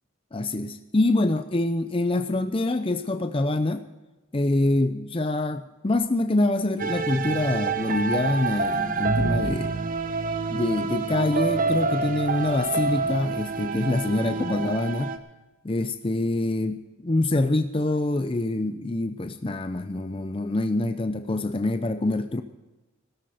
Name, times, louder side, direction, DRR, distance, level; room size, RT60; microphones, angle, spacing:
voice 1, 0.3-3.8 4.3-9.7 10.5-15.2 15.6-16.8 17.0-22.4, left 2 dB, 25° left, 9 dB, 0.6 m, -25 dB
sound 1, 6.8-15.2, right 4 dB, 40° right, 1.0 m, -27 dB
16.5 x 13.5 x 5.0 m, 1.1 s
head